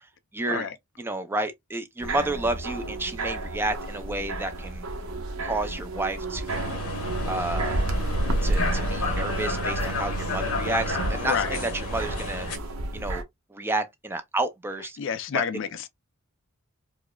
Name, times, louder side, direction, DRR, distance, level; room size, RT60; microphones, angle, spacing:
voice 1, 0.3-0.7 1.0-4.9 5.4-6.7 7.3-7.8 8.4-12.5 12.9-13.2 13.5-15.0 15.3-15.4, right 2 dB, 10° right, 0.4 m, -30 dB
sound 1, 2.0-13.2, right 1 dB, 75° right, 0.8 m, -31 dB
sound 2, 6.5-12.6, left 1 dB, 85° left, 1.1 m, -31 dB
voice 2, 11.2-11.6 15.0-15.9, left 7 dB, 60° left, 0.4 m, -29 dB
4.7 x 2.0 x 2.3 m
head